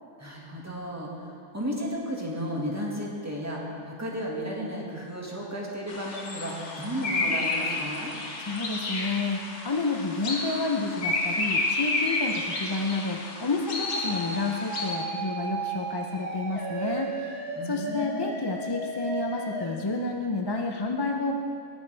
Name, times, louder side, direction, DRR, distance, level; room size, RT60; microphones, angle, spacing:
voice 1, 0.2-8.1 17.6-18.3, equal, 15° right, -3 dB, 1.8 m, -34 dB
sound 1, 5.9-15.0, left 2 dB, 90° left, 1.6 m, -31 dB
voice 2, 8.4-17.4 17.6-21.4, left 3 dB, 30° left, 3 dB, 0.5 m, -30 dB
sound 2, 13.8-19.7, right 3 dB, 55° left, 2.0 m, -35 dB
18.5 x 8.8 x 3.4 m, 2.3 s
omnidirectional pair, 1.2 m